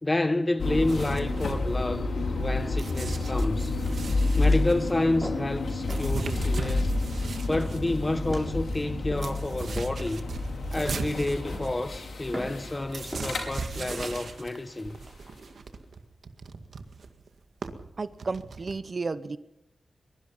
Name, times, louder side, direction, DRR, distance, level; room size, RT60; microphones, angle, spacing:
voice 1, 0.0-2.1 2.4-3.8 4.4-6.9 7.5-10.2 10.7-15.0, left 2 dB, 25° left, 1.5 m, -29 dB
sound 1, 0.6-14.5, left 2 dB, 80° left, 5.3 m, -30 dB
sound 2, 0.9-2.4 2.8-7.8 8.3-8.4 8.6-18.7, right 4 dB, 70° right, 2.0 m, -39 dB
sound 3, 3.8-4.1 4.5-4.8 5.2-5.5 5.9-6.1 6.6-6.8 7.5-7.8 8.3-8.5 9.1-9.5 10.0-10.4 10.8-11.1 11.5-11.8 12.3-12.6 13.1-13.4 13.9-14.2 14.8-15.1, right 1 dB, 5° right, 6.2 m, -40 dB
voice 2, 18.0-19.4, right 4 dB, 45° right, 0.9 m, -32 dB
22.5 x 22.5 x 5.6 m
wide cardioid pair, 100°, 0 cm